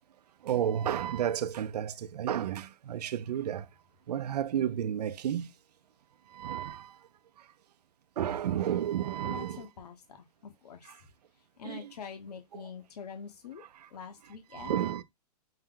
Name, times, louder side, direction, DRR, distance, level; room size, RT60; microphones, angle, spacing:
voice 1, 0.5-3.6 4.1-5.5 6.4-6.8 8.2-9.6 11.7-11.8 14.5-15.0, right 10 dB, 80° right, 0.5 m, -31 dB
voice 2, 9.2-11.1 11.6-13.6 13.9-14.9, left 6 dB, 75° left, 1.0 m, -45 dB
5.5 x 2.2 x 3.7 m
hypercardioid pair, 170°, 20 cm